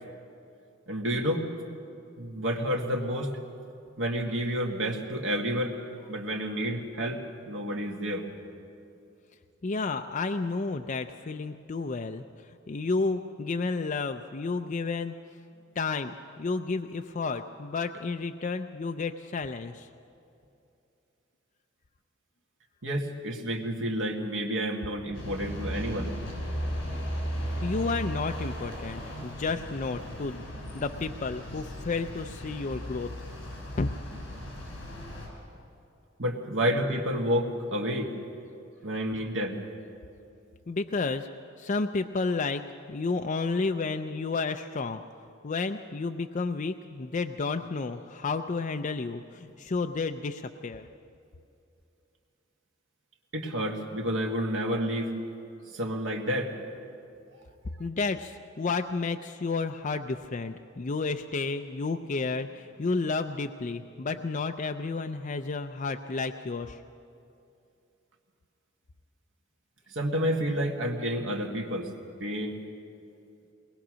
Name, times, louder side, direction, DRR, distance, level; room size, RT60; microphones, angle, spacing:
voice 1, 0.9-1.5 2.2-3.3 4.0-5.8 6.1-8.3 22.8-26.1 36.2-38.1 38.8-39.6 53.3-55.1 55.7-56.5 69.9-71.9 72.2-72.6, equal, 75° right, 1 dB, 1.9 m, -30 dB
voice 2, 9.6-15.1 15.8-19.9 27.6-30.5 30.7-33.1 33.8-33.9 40.7-41.3 41.6-45.0 45.4-50.9 57.8-66.8, left 3 dB, 40° left, 7 dB, 0.5 m, -31 dB
sound 1, 25.1-35.3, equal, 65° left, 5.9 m, -36 dB
21.5 x 19.5 x 6.3 m, 2.7 s
head